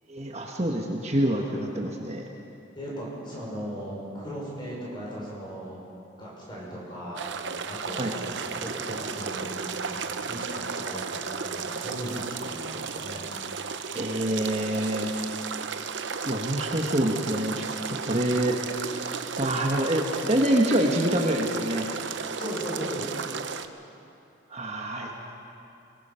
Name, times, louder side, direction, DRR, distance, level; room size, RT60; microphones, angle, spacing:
voice 1, 0.1-2.2 8.0-8.1 13.9-15.1 16.2-18.5 19.4-21.9 24.5-25.3, right 1 dB, 35° right, 0 dB, 1.4 m, -26 dB
voice 2, 2.7-5.8 6.2-7.2 7.6-13.3 22.4-23.2, equal, 25° left, -5 dB, 5.8 m, -37 dB
sound 1, 7.2-23.7, right 5 dB, 65° right, 0.8 m, -34 dB
23.0 x 20.0 x 5.7 m, 2.7 s
head